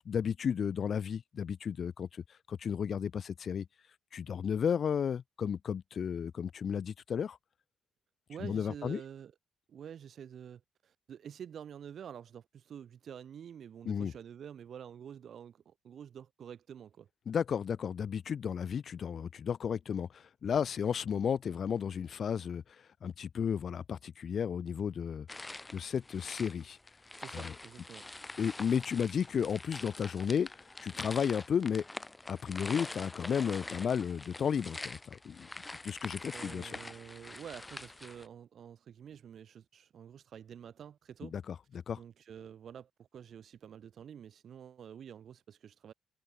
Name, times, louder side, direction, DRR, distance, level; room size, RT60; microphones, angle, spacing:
voice 1, 0.0-2.2 2.5-3.7 4.1-7.4 8.4-9.0 13.9-14.1 17.3-25.3 25.7-26.8 27.3-27.5 28.4-31.8 32.3-35.5 35.8-36.7 41.3-41.5 41.9-42.0, left 7 dB, 55° left, 0.8 m, -33 dB
voice 2, 8.3-9.3 9.7-17.1 27.2-28.1 36.3-41.3 42.0-45.9, right 8 dB, 60° right, 2.8 m, -48 dB
sound 1, 25.3-38.3, left 2 dB, 15° left, 1.8 m, -45 dB
cardioid pair, 90°, 0 cm